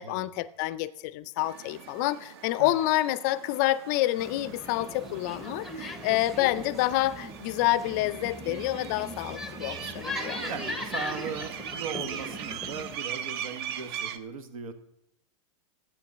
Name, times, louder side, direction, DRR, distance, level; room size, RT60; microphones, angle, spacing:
voice 1, 0.0-10.5, left 16 dB, 30° left, 0.4 m, -28 dB
sound 1, 1.4-14.2, right 9 dB, 45° right, 0.8 m, -41 dB
sound 2, 4.2-13.0, left 1 dB, ahead, 0.7 m, -39 dB
voice 2, 10.5-14.7, right 6 dB, 85° right, 1.8 m, -38 dB
11.5 x 8.5 x 7.2 m
supercardioid pair, 165°, 18 cm